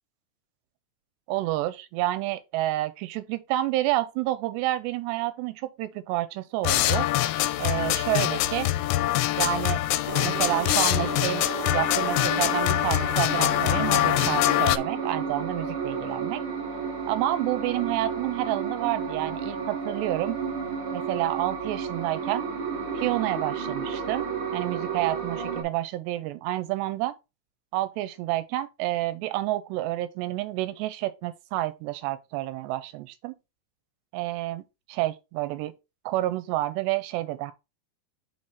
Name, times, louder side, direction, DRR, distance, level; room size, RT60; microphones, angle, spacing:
voice 1, 1.3-7.1 7.6-8.7 9.4-9.8 10.2-11.4 11.7-16.4 17.1-20.4 20.9-22.5 22.9-27.1 27.7-33.3 34.1-34.6 34.9-35.7 36.1-37.5, right 16 dB, 85° right, 2.7 m, -29 dB
sound 1, 6.6-14.8, left 15 dB, 85° left, 2.8 m, -24 dB
sound 2, 10.1-25.6, right 5 dB, 35° right, 2.6 m, -32 dB
5.8 x 4.7 x 4.4 m
omnidirectional pair, 5.0 m